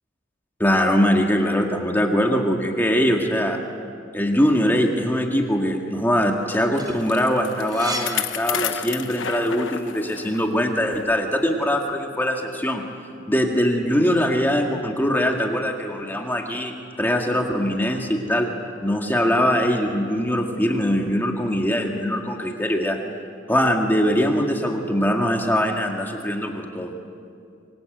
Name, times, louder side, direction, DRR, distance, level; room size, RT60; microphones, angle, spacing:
voice 1, 0.6-3.6 4.1-12.8 13.3-18.5 18.8-23.0 23.5-26.9, equal, 10° left, 1 dB, 2.0 m, -22 dB
Bicycle, 6.5-10.5 10.9-11.0 11.8-11.9, left 9 dB, 65° left, 1.2 m, -31 dB
sound 1, 6.5-9.2 9.6-11.0, right 1 dB, 20° right, 3.8 m, -36 dB
27.0 x 24.5 x 8.0 m, 2.4 s
head